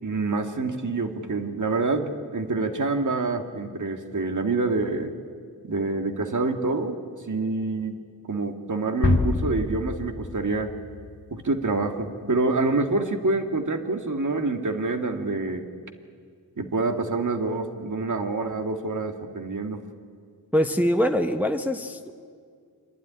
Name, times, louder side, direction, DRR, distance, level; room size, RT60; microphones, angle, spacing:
voice 1, 0.0-5.1 5.6-7.0 7.3-8.0 8.3-10.7 11.3-15.7 16.6-19.8, right 3 dB, 50° right, 5 dB, 1.9 m, -26 dB
sound 1, 9.0-11.9, left 3 dB, 60° left, 1.9 m, -27 dB
voice 2, 20.5-22.1, equal, 5° right, 4 dB, 0.9 m, -23 dB
26.0 x 11.5 x 9.9 m, 2.1 s
wide cardioid pair, 60°, 40 cm